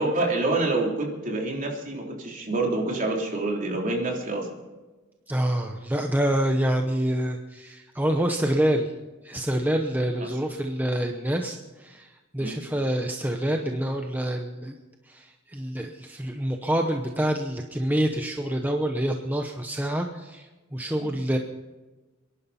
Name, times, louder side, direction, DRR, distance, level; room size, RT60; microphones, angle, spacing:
voice 1, 0.0-4.5 10.2-10.4 12.4-12.6 21.1-21.2, right 2 dB, 40° right, -1 dB, 3.5 m, -27 dB
voice 2, 5.3-8.9 9.2-14.7 15.1-21.4, right 1 dB, 10° right, 3 dB, 0.9 m, -27 dB
28.0 x 11.0 x 4.3 m, 1.2 s
head